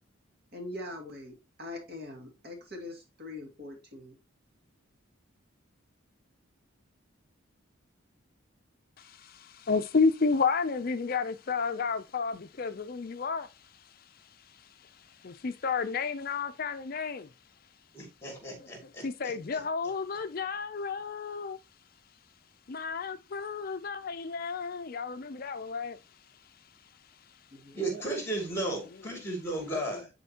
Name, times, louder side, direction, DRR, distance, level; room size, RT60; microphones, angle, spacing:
voice 1, 0.5-4.1 27.5-28.0, left 2 dB, 50° right, 2.3 m, -42 dB
voice 2, 9.0-17.3 18.6-21.6 22.7-26.0, left 4 dB, 45° left, 0.5 m, -32 dB
voice 3, 17.9-19.3 27.7-30.1, right 2 dB, 10° left, 2.6 m, -35 dB
10.5 x 4.2 x 2.9 m
head